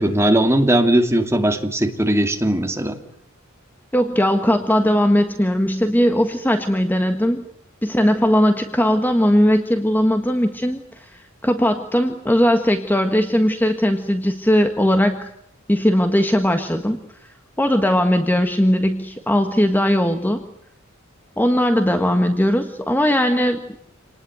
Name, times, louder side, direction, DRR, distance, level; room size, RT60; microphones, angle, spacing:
voice 1, 0.0-3.0, right 1 dB, 15° right, 5 dB, 2.6 m, -18 dB
voice 2, 3.9-7.4 7.8-10.8 11.1-15.3 15.7-17.0 17.6-20.4 21.4-23.6, equal, 10° left, 6 dB, 1.6 m, -18 dB
27.5 x 20.0 x 9.5 m, 0.70 s
head